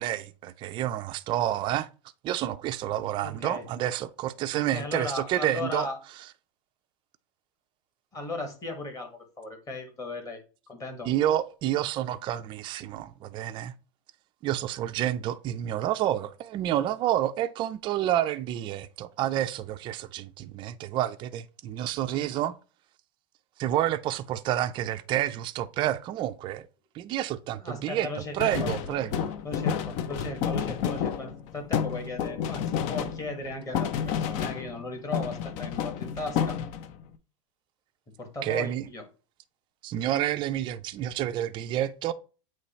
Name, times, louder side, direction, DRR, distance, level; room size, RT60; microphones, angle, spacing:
voice 1, 0.0-1.9 2.2-5.9 11.1-13.7 14.4-22.5 23.6-26.7 26.9-28.1 28.3-29.3 29.6-29.7 38.4-38.9 39.8-42.1, right 12 dB, 30° right, 0.4 m, -29 dB
voice 2, 3.2-3.6 4.5-6.0 8.1-10.4 10.7-11.1 27.6-28.7 29.4-36.6 38.2-39.0, left 2 dB, 20° left, 1.7 m, -36 dB
sound 1, 28.4-34.9 35.1-37.0, left 8 dB, 45° left, 0.6 m, -30 dB
8.2 x 3.2 x 4.2 m
supercardioid pair, 150°, 18 cm